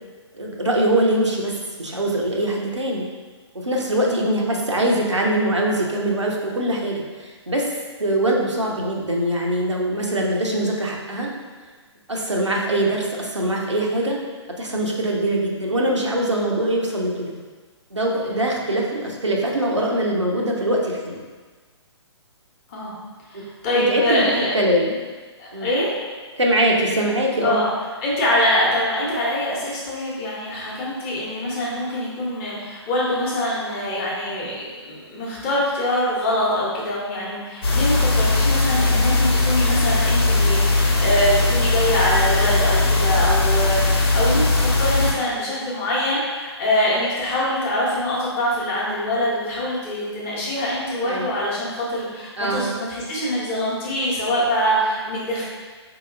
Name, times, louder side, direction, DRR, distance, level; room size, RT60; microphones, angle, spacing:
voice 1, 0.3-1.5 1.8-3.0 3.5-7.7 8.0-11.3 12.1-14.2 14.6-17.3 17.9-21.2 23.3-23.5 23.7-24.2 24.5-25.0 25.5-25.7 26.4-27.6 51.0-51.3 52.4-52.7, right 1 dB, 85° right, -1 dB, 0.7 m, -22 dB
voice 2, 23.3-24.5 25.4-25.9 27.4-27.7 28.0-55.4, left 1 dB, 25° left, -6 dB, 0.9 m, -24 dB
sound 1, 37.6-45.1, left 2 dB, 55° left, 1.0 m, -19 dB
4.5 x 2.8 x 2.5 m, 1.4 s
figure-of-eight pair, 130°, 15 cm